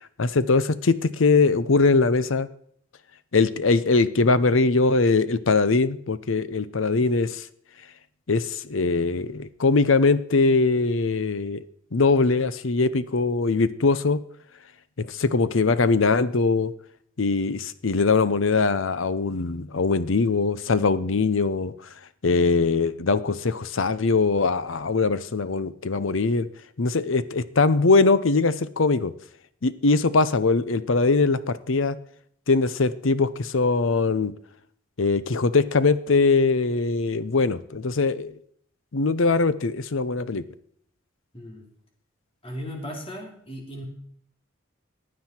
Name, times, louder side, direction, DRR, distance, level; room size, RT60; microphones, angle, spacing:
voice 1, 0.2-2.5 3.3-7.4 8.3-11.6 11.9-14.2 15.0-16.7 17.2-21.7 22.2-26.5 26.8-29.1 29.6-32.0 32.5-34.3 35.0-38.3 38.9-40.4, left 3 dB, 70° left, 15 dB, 0.7 m, -21 dB
voice 2, 41.3-41.7 42.4-43.8, equal, 30° left, 2 dB, 3.0 m, -36 dB
15.5 x 9.7 x 4.4 m, 0.66 s
head